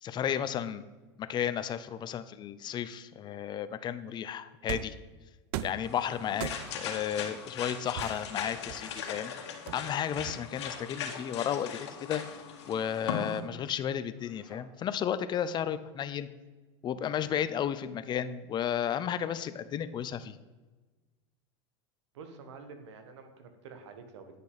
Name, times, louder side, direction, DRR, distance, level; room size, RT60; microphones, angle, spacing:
voice 1, 0.0-0.8 1.2-5.0 5.6-9.3 9.7-12.2 12.7-16.3 16.8-20.4, left 9 dB, 30° left, 13 dB, 0.6 m, -33 dB
sound 1, 4.7-5.0 5.5-5.9 6.4-6.9 8.0-9.1 9.7-10.7, right 12 dB, 60° right, 0.6 m, -39 dB
sound 2, 5.8-13.4, left 7 dB, 80° left, 1.9 m, -39 dB
sound 3, 5.8-6.7 8.3-8.9 10.4-10.9 12.4-12.8 14.1-14.7, left 1 dB, 5° right, 3.5 m, -56 dB
voice 2, 22.1-24.4, right 5 dB, 85° right, 7 dB, 1.7 m, -48 dB
10.5 x 6.7 x 4.9 m, 1.2 s
supercardioid pair, 120°, 14 cm